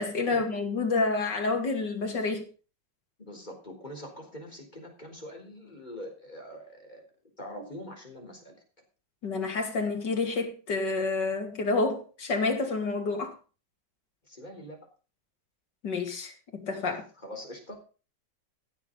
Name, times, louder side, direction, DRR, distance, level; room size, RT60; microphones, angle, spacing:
voice 1, 0.0-2.5 9.2-13.3 15.8-17.0, left 3 dB, 70° left, 3.1 m, -29 dB
voice 2, 3.2-7.0 7.4-8.6 14.2-14.8 16.9-17.8, equal, 25° left, 4.1 m, -44 dB
15.5 x 7.5 x 5.3 m
omnidirectional pair, 1.9 m